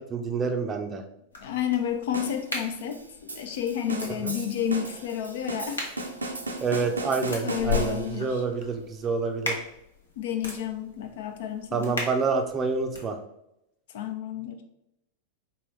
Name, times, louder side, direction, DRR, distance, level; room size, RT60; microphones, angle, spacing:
voice 1, 0.1-1.0 4.2-4.3 6.6-9.6 11.7-13.2, right 4 dB, 25° right, 5 dB, 0.5 m, -27 dB
sound 1, 1.3-13.1, left 5 dB, 70° left, 0.9 m, -38 dB
voice 2, 1.4-5.9 7.4-8.4 10.2-12.0 13.9-14.6, left 9 dB, 55° left, 7 dB, 0.4 m, -31 dB
sound 2, 2.1-8.3, right 2 dB, 80° right, 0.6 m, -36 dB
4.6 x 2.9 x 3.1 m, 0.82 s
figure-of-eight pair, 90°, 0 cm